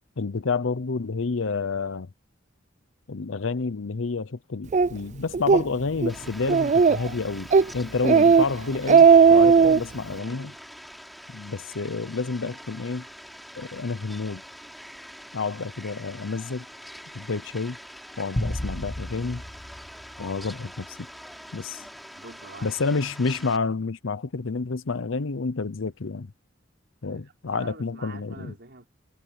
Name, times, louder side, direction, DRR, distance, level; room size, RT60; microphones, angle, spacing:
voice 1, 0.2-2.1 3.1-7.5 7.7-10.5 11.3-13.1 13.6-14.4 15.3-16.7 17.1-17.8 18.2-19.4 20.2-21.1 21.5-21.8 22.6-26.3 27.0-28.5, left 4 dB, 85° left, 0.7 m, -29 dB
Speech, 4.7-4.9 5.3-5.6 6.0-6.1 6.5-7.1 7.5-7.7 8.0-8.4 8.7-9.8, right 6 dB, 35° right, 0.4 m, -16 dB
Fowl, 6.1-23.6, equal, ahead, 3.9 m, -44 dB
voice 2, 10.1-10.6 21.8-22.8 27.0-28.9, right 3 dB, 60° right, 5.0 m, -46 dB
sound 1, 18.4-20.9, left 1 dB, 20° left, 1.3 m, -33 dB
head